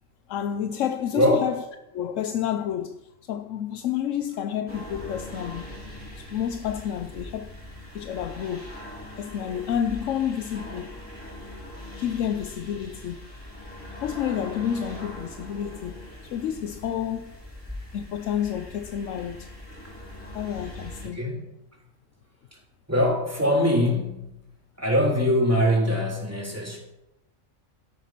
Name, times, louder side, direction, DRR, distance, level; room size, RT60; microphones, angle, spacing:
voice 1, 0.3-1.6 1.9-3.0 3.3-5.7 6.2-7.5 7.9-8.7 9.2-11.0 12.0-13.3 14.0-16.0 16.3-17.3 17.9-19.5 20.3-21.2, left 9 dB, 75° left, 1.0 m, -29 dB
voice 2, 1.1-1.5 21.1-21.4 22.9-24.2 24.8-26.8, equal, 10° right, 3.4 m, -22 dB
sound 1, 4.7-21.1, left 1 dB, 10° left, 3.6 m, -41 dB
12.5 x 11.0 x 5.9 m
omnidirectional pair, 1.3 m